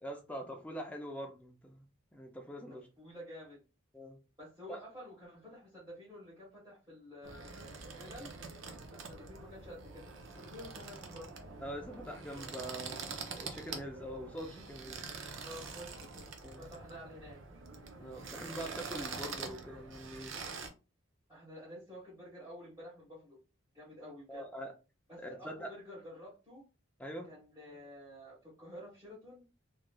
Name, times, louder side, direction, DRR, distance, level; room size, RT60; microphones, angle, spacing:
voice 1, 0.0-1.9 2.1-2.9 3.9-4.2 4.7-4.8 11.6-15.0 16.4-16.7 18.0-20.4 24.3-24.7 25.2-25.7 27.0-27.3, equal, 5° left, 0.4 m, -44 dB
voice 2, 2.7-3.6 4.4-8.3 8.9-11.3 15.4-17.4 21.3-23.4 23.7-24.5 25.1-26.6 27.3-29.4, left 1 dB, 15° right, 1.3 m, -50 dB
sound 1, 7.2-20.7, right 4 dB, 70° right, 0.5 m, -45 dB
3.1 x 2.4 x 2.3 m
head